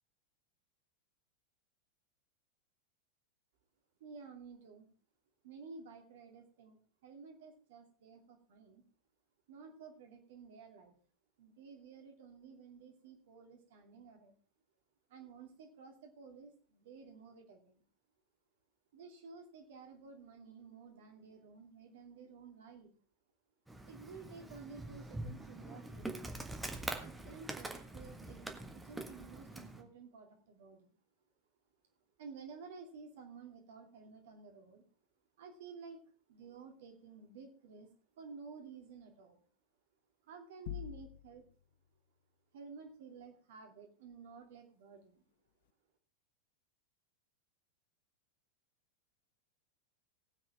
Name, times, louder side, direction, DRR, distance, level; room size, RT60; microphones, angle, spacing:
voice 1, 4.0-4.9 5.4-6.8 7.0-8.8 9.5-10.9 11.4-14.4 15.1-17.8 18.9-22.9 23.9-26.3 26.9-30.9 32.2-34.8 35.4-36.0 36.3-37.9 38.2-39.4 40.3-41.4 42.5-45.2, right 5 dB, 55° right, 3 dB, 2.5 m, -53 dB
Insect, 23.7-29.8, right 2 dB, 5° right, 1.6 m, -44 dB
sound 1, 40.7-41.6, left 15 dB, 55° left, 0.5 m, -44 dB
19.5 x 7.8 x 3.5 m, 0.42 s
figure-of-eight pair, 90°, 0 cm